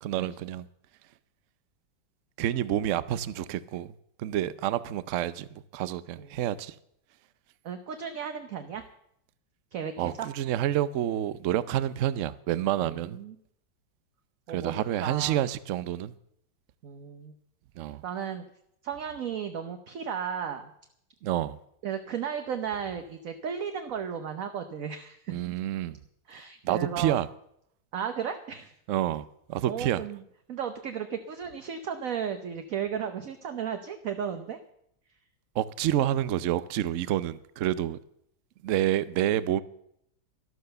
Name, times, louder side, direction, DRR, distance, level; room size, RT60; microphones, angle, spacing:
voice 1, 0.0-0.7 2.4-3.9 4.2-6.8 10.0-13.2 14.5-16.1 17.8-18.0 21.2-21.6 25.3-26.0 26.6-27.3 28.9-30.0 35.5-38.0 38.6-39.6, right 12 dB, 75° right, 0.7 m, -28 dB
voice 2, 7.6-8.8 9.7-10.3 12.8-13.3 14.5-15.4 16.8-17.3 18.0-18.4 18.8-20.7 21.8-25.5 26.3-27.2 27.9-28.7 29.7-30.2 30.5-34.6, right 7 dB, 55° right, 1.1 m, -34 dB
12.5 x 12.5 x 6.7 m
omnidirectional pair, 2.1 m